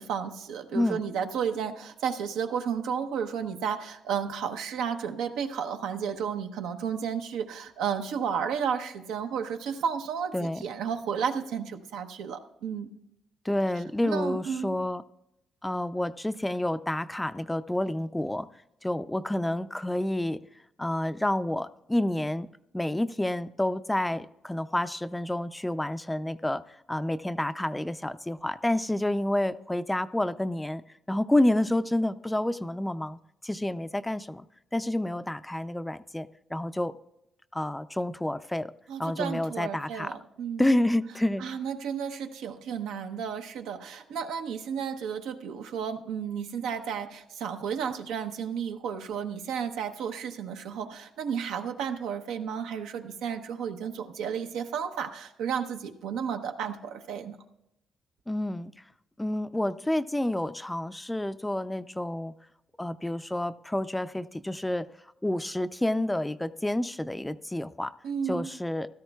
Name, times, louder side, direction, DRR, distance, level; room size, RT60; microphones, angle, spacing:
voice 1, 0.0-12.9 14.0-14.8 38.9-40.7 41.4-57.4 68.0-68.5, right 7 dB, 90° right, 6 dB, 0.8 m, -32 dB
voice 2, 13.4-15.0 15.6-18.5 18.8-20.4 20.8-22.5 22.7-30.8 31.1-33.2 33.4-34.5 34.7-36.9 37.5-38.7 39.0-40.1 40.6-41.5 58.3-58.7 59.2-62.3 62.8-64.9 65.2-67.9 68.3-68.9, left 1 dB, 10° left, 13 dB, 0.4 m, -29 dB
16.0 x 13.0 x 2.3 m, 0.86 s
cardioid pair, 90°, 0 cm